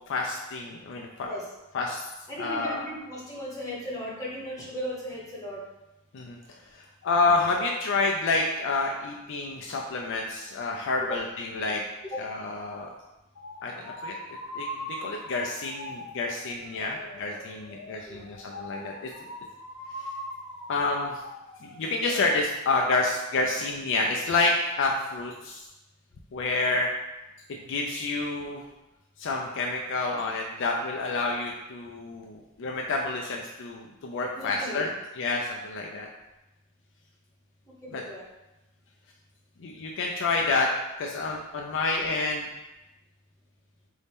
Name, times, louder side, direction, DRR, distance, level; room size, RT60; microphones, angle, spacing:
voice 1, 0.0-1.3 1.7-2.1 2.4-2.9 6.1-6.4 6.7-11.8 12.2-12.9 13.6-14.1 14.5-19.3 20.0-20.1 20.7-21.2 21.6-25.6 26.3-26.9 27.7-28.6 29.2-34.9 35.2-36.1 37.9-38.0 39.6-40.7 41.0-42.5, left 3 dB, 60° left, 0 dB, 0.4 m, -29 dB
voice 2, 2.3-5.6 11.0-11.2 12.1-12.2 17.0-17.1 18.1-18.2 18.8-18.9 34.3-34.9 37.8-38.2, equal, 15° left, -6 dB, 1.1 m, -36 dB
sound 1, 13.4-22.2, left 1 dB, 85° left, 1.0 m, -41 dB
4.1 x 2.7 x 3.5 m, 1.0 s
head